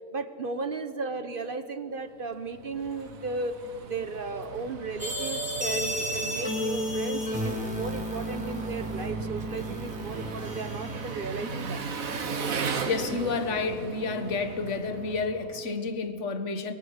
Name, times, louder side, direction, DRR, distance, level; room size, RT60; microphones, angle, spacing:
voice 1, 0.1-3.6 3.8-11.8, right 4 dB, 40° right, 1.0 m, -35 dB
Engine, 2.2-15.8, right 5 dB, 65° right, 1.8 m, -37 dB
sound 1, 5.0-11.7, equal, 5° right, 5.0 m, -32 dB
voice 2, 12.6-16.7, left 4 dB, 50° left, 1.7 m, -30 dB
24.5 x 22.5 x 6.6 m
omnidirectional pair, 1.6 m